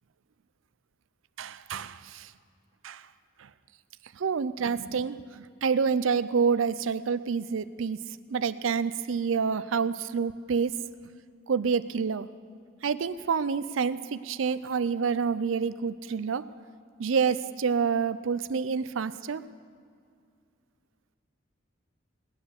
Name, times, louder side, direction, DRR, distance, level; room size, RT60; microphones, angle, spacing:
voice 1, 1.4-2.3 2.8-3.0 4.2-8.0 8.3-10.8 11.5-12.3 12.8-16.4 17.0-19.4, right 6 dB, 85° right, 15 dB, 0.5 m, -28 dB
18.5 x 9.6 x 6.5 m, 2.2 s
head